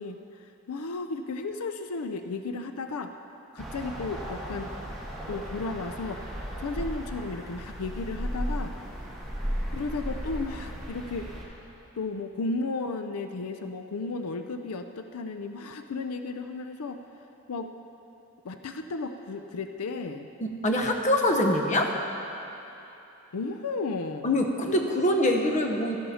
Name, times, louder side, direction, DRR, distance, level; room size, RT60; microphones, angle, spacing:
voice 1, 0.0-3.1 3.5-4.7 5.3-6.2 6.6-8.7 9.7-11.3 11.9-17.0 17.5-17.7 18.4-20.3 23.3-24.3, left 3 dB, 85° left, 7 dB, 0.5 m, -34 dB
sound 1, 3.6-11.4, equal, ahead, 1.5 m, -35 dB
voice 2, 20.4-21.9 24.2-26.0, left 1 dB, 35° left, 3 dB, 0.8 m, -24 dB
13.0 x 11.0 x 4.2 m, 3.0 s
head